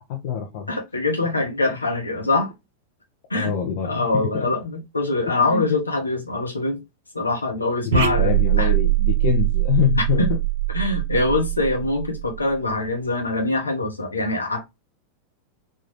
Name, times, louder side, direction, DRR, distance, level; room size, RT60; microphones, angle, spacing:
voice 1, 0.0-0.8 3.3-4.5 5.4-5.8 7.9-10.2, left 9 dB, 50° left, 0.8 m, -25 dB
voice 2, 0.7-2.5 3.3-3.5 3.8-6.8 7.1-8.3 8.6-8.7 10.2-10.3 10.7-14.6, left 2 dB, 80° left, 1.1 m, -23 dB
sound 1, 7.9-12.6, right 14 dB, 55° right, 0.6 m, -22 dB
3.8 x 2.5 x 3.3 m
figure-of-eight pair, 90°, 0 cm